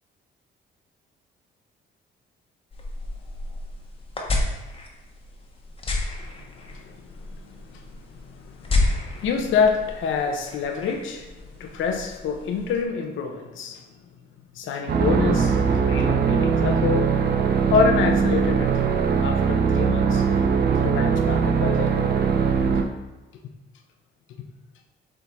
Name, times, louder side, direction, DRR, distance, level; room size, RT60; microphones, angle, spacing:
sound 1, 2.7-12.8, left 2 dB, 25° left, 1.2 m, -31 dB
voice 1, 8.2-11.3 11.6-13.8 14.5-15.6 15.8-17.1 17.7-18.8 19.2-20.2 20.8-21.9, left 5 dB, 80° left, 4 dB, 0.9 m, -26 dB
sound 2, 14.9-22.8, right 6 dB, 50° right, 0.7 m, -21 dB
7.0 x 3.9 x 4.1 m, 1.1 s
cardioid pair, 90°, 20 cm